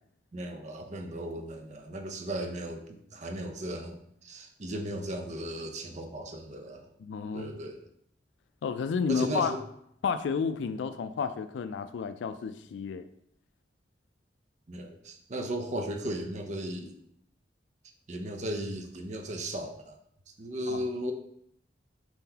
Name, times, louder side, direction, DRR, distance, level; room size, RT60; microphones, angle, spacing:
voice 1, 0.3-6.9 7.3-7.8 9.1-9.6 14.7-17.0 18.1-20.0 20.4-21.1, right 1 dB, 40° right, 5 dB, 0.5 m, -36 dB
voice 2, 7.0-7.5 8.6-9.5 10.0-13.1 20.7-20.8, left 6 dB, 90° left, 11 dB, 0.3 m, -31 dB
4.3 x 3.8 x 2.8 m, 0.70 s
head